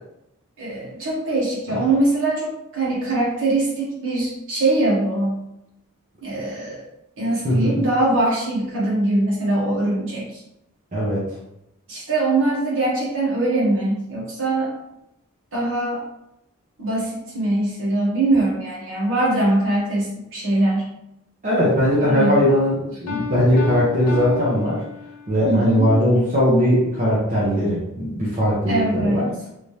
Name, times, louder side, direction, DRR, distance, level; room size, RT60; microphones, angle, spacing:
voice 1, 0.6-5.4 6.2-6.8 7.2-10.4 11.9-14.7 15.5-16.0 16.8-20.9 22.0-22.4 23.3-23.5 25.4-26.0 28.7-29.5, right 2 dB, 60° right, -5 dB, 1.4 m, -22 dB
voice 2, 7.4-7.8 10.9-11.2 21.4-24.8 25.3-29.3, equal, 35° right, -8 dB, 0.9 m, -19 dB
Piano, 23.1-25.5, left 6 dB, 85° left, 0.8 m, -32 dB
3.3 x 2.8 x 3.3 m, 0.85 s
head